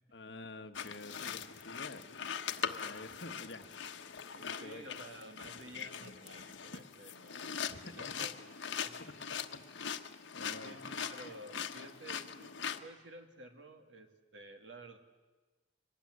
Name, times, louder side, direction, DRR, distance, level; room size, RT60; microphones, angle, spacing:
voice 1, 0.1-2.1 2.6-3.7 4.4-4.8 7.7-8.1 9.0-11.0, left 2 dB, 70° left, 8 dB, 1.4 m, -50 dB
sound 1, 0.7-12.8, left 7 dB, 90° left, 1.2 m, -41 dB
voice 2, 4.3-8.3 8.8-9.3 10.6-15.0, right 1 dB, 85° right, 5 dB, 2.5 m, -52 dB
24.0 x 19.0 x 9.8 m, 1.3 s
head